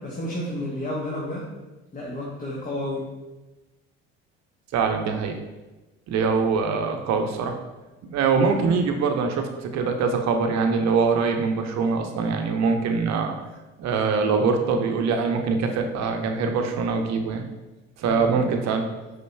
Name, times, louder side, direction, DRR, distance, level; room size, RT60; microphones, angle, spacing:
voice 1, 0.0-1.5 1.9-3.1 18.0-18.5, left 1 dB, 25° left, -4 dB, 1.0 m, -31 dB
voice 2, 4.7-5.4 6.1-7.6 8.0-13.3 13.8-17.4 18.0-18.8, right 5 dB, 55° right, 5 dB, 0.7 m, -23 dB
5.2 x 3.9 x 2.2 m, 1.1 s
hypercardioid pair, 60°, 33 cm